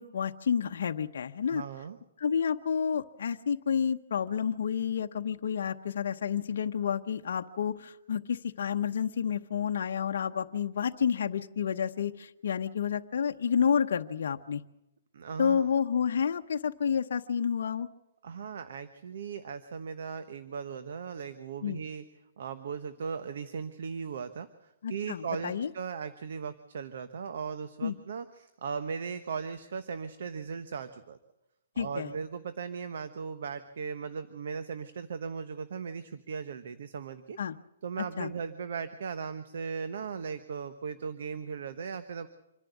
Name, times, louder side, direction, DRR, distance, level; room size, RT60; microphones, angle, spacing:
voice 1, 0.0-1.6 2.2-14.6 15.4-17.9 21.6-21.8 24.8-25.7 27.8-28.0 31.8-32.1 37.4-37.6 38.0-38.3, left 7 dB, 65° left, 5 dB, 0.9 m, -30 dB
voice 2, 1.5-2.0 15.1-15.7 18.2-22.0 22.4-31.2 31.7-37.4 37.8-42.3, right 6 dB, 65° right, 10 dB, 1.1 m, -38 dB
26.0 x 11.0 x 9.3 m, 0.88 s
hypercardioid pair, 165°, 0 cm